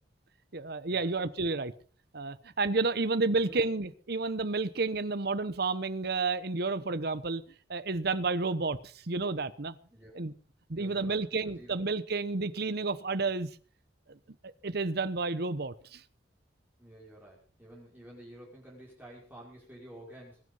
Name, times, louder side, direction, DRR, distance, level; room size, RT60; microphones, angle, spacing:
voice 1, 0.5-1.7 2.1-7.4 7.7-9.8 10.1-10.3 10.7-13.5 14.1-14.2 14.6-16.0, right 3 dB, 60° right, 14 dB, 1.0 m, -31 dB
voice 2, 10.8-11.8 16.8-20.4, right 1 dB, 10° right, -5 dB, 5.6 m, -50 dB
22.0 x 9.6 x 5.5 m, 0.43 s
head